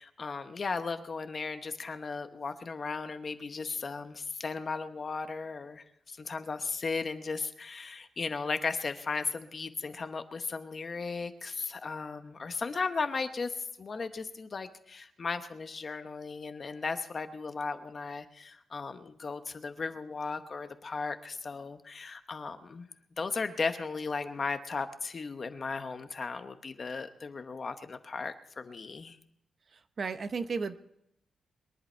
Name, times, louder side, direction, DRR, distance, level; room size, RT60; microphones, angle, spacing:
voice 1, 0.0-13.5 13.8-22.9 23.2-29.2, left 4 dB, 30° left, 9 dB, 0.9 m, -36 dB
voice 2, 29.7-30.8, right 5 dB, 35° right, 10 dB, 0.7 m, -34 dB
22.5 x 11.0 x 4.4 m, 0.78 s
wide cardioid pair, 175°, 0 cm